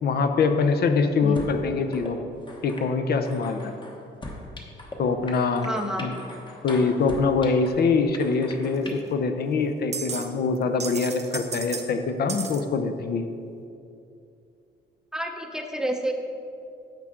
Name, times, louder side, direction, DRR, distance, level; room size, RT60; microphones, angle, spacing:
voice 1, 0.0-2.3 2.6-3.7 5.0-5.7 6.0-6.1 6.6-13.3, left 4 dB, 60° left, 7 dB, 0.6 m, -24 dB
sound 1, 1.4-1.6 1.9-2.1 2.5-2.9 3.3-5.0 5.3-7.8 8.1-8.9, left 2 dB, 25° left, 1.1 m, -39 dB
voice 2, 5.6-6.1 15.1-16.1, equal, 5° right, 3 dB, 0.7 m, -29 dB
sound 2, 8.9-9.0 9.9-10.3 10.5-11.9 12.3-12.6, right 5 dB, 35° right, 0.8 m, -33 dB
10.5 x 7.4 x 3.7 m, 2.6 s
cardioid pair, 135°, 19 cm